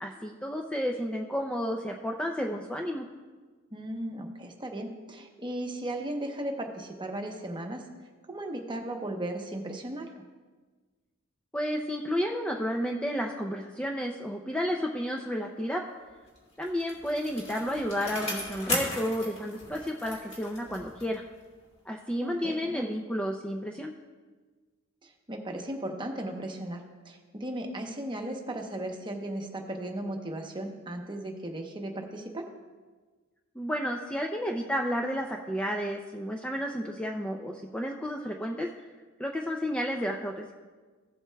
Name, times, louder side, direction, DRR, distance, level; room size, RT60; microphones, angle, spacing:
voice 1, 0.0-3.1 11.5-15.8 16.6-21.2 21.9-23.9 33.6-38.7 39.2-40.5, equal, 5° left, 1 dB, 0.4 m, -31 dB
voice 2, 3.7-7.8 8.3-10.1 22.2-22.9 25.0-32.5, right 1 dB, 20° right, 3 dB, 0.9 m, -36 dB
Bicycle, 16.4-21.3 21.6-21.7, left 1 dB, 30° left, 2.1 m, -37 dB
15.5 x 7.8 x 2.3 m, 1.4 s
head